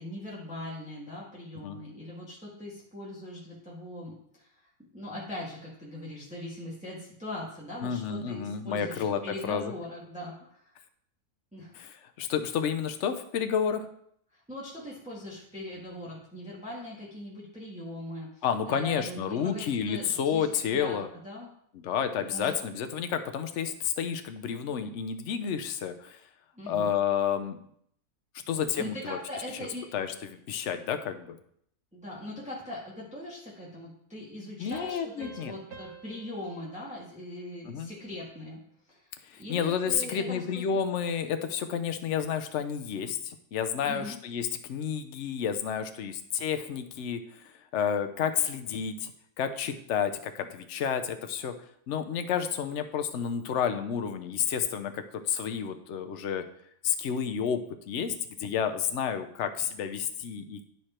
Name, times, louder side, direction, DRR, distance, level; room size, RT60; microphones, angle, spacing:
voice 1, 0.0-10.7 11.5-11.7 14.3-21.0 21.2-21.5 22.2-22.6 26.5-26.9 28.8-29.9 31.9-38.6 38.9-39.1 39.4-40.6 43.9-44.2, left 1 dB, 5° right, -6 dB, 1.6 m, -41 dB
voice 2, 7.8-9.7 11.7-13.9 18.4-21.1 21.7-26.2 26.7-27.6 28.5-29.2 29.9-31.4 34.6-35.5 37.7-37.9 39.2-49.1 49.4-51.5 51.9-56.4 56.8-60.6, left 7 dB, 60° left, 8 dB, 0.9 m, -30 dB
sound 1, 34.7-38.0, right 6 dB, 75° right, 1.5 m, -50 dB
10.5 x 4.8 x 4.4 m, 0.69 s
omnidirectional pair, 1.6 m